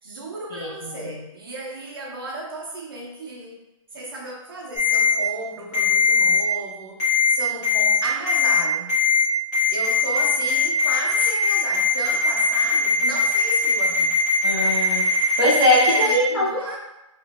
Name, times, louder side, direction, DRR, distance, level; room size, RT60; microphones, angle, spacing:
voice 1, 0.0-3.6 3.9-9.0 9.7-14.2 15.8-16.8, right 1 dB, 45° right, -2 dB, 0.6 m, -34 dB
voice 2, 0.6-1.1 14.4-15.0 15.4-16.5, left 1 dB, 40° left, -6 dB, 1.0 m, -21 dB
Ringtone, 4.7-5.1 5.7-6.4 7.0-7.3 7.6-8.0 8.3-8.6 8.9-9.2 9.5-16.1, left 4 dB, 15° left, 1.0 m, -20 dB
3.3 x 2.9 x 2.5 m, 0.92 s
hypercardioid pair, 180°, 17 cm